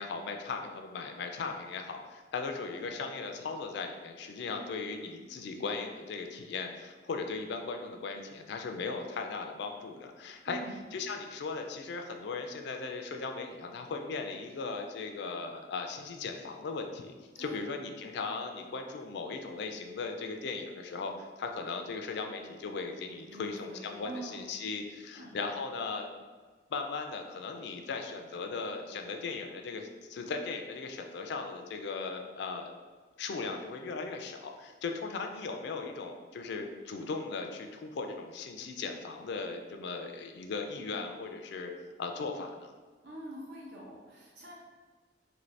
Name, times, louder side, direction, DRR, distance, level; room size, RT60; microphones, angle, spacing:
voice 1, 0.0-10.6 10.9-21.1 21.4-26.1 26.7-32.7 33.2-41.7 42.0-42.7, left 4 dB, 65° left, 4 dB, 0.4 m, -38 dB
voice 2, 10.4-10.8 17.4-17.7 23.3-24.4 25.2-25.4 43.0-44.6, right 2 dB, 65° right, -4 dB, 0.8 m, -45 dB
2.8 x 2.6 x 3.2 m, 1.4 s
head